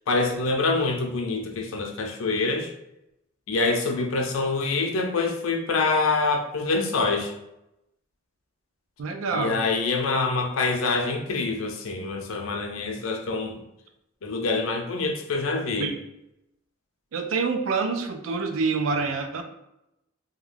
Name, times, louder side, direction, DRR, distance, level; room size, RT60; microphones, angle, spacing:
voice 1, 0.1-2.7 3.5-7.3 9.3-13.6 14.2-15.9, left 3 dB, 85° left, 3 dB, 0.5 m, -25 dB
voice 2, 9.0-9.6 15.8-16.0 17.1-19.4, right 4 dB, 85° right, 6 dB, 0.4 m, -26 dB
2.3 x 2.2 x 3.2 m, 0.86 s
head